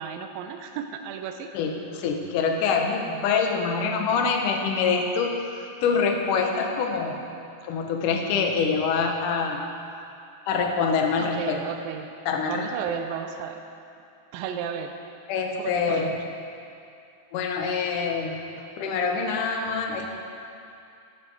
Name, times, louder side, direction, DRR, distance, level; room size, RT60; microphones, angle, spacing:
voice 1, 0.0-1.5 11.2-12.1 12.5-13.6 14.3-14.9 15.6-16.1 18.6-18.7, right 7 dB, 85° right, 6 dB, 2.4 m, -33 dB
voice 2, 1.5-7.2 7.6-9.6 10.5-11.6 12.3-12.7 15.3-16.1 17.3-18.4 18.8-20.1, left 5 dB, 70° left, 2 dB, 2.4 m, -25 dB
14.0 x 12.0 x 4.7 m, 2.6 s
omnidirectional pair, 4.3 m